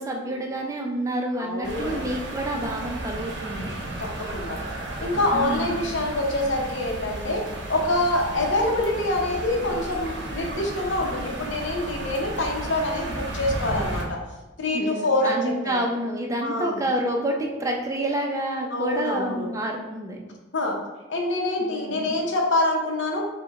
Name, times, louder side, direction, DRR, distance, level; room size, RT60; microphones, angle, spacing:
voice 1, 0.0-3.7 5.3-5.9 14.7-20.2 21.6-22.2, right 1 dB, 15° right, 0 dB, 0.5 m, -28 dB
voice 2, 1.4-2.1 4.0-4.6 5.0-7.4 7.7-14.2 14.6-15.8 16.4-16.8 18.7-19.5 20.5-20.8 21.1-23.2, left 1 dB, 70° left, 0 dB, 0.7 m, -26 dB
sound 1, 1.6-14.0, right 2 dB, 60° right, 0.7 m, -34 dB
4.8 x 2.2 x 3.5 m, 1.1 s
head